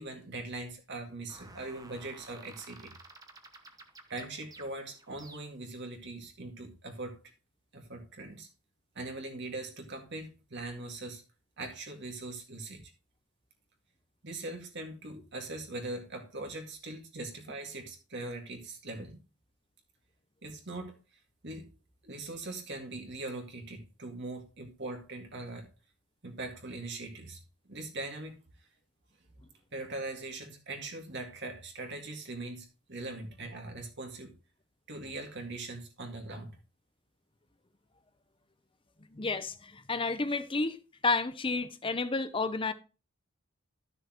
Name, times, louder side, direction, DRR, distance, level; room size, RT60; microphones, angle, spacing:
voice 1, 0.0-2.9 4.1-7.2 7.7-8.5 9.0-11.2 11.6-12.8 14.2-19.2 20.4-21.0 21.4-21.7 22.0-25.7 26.2-27.4 27.7-28.4 29.7-34.3 34.9-36.5, right 2 dB, 50° right, 2.1 m, -41 dB
sound 1, 1.3-5.8, right 3 dB, 15° right, 0.8 m, -53 dB
voice 2, 39.1-40.8 41.0-42.7, left 3 dB, 25° left, 0.7 m, -31 dB
13.0 x 6.6 x 3.0 m
head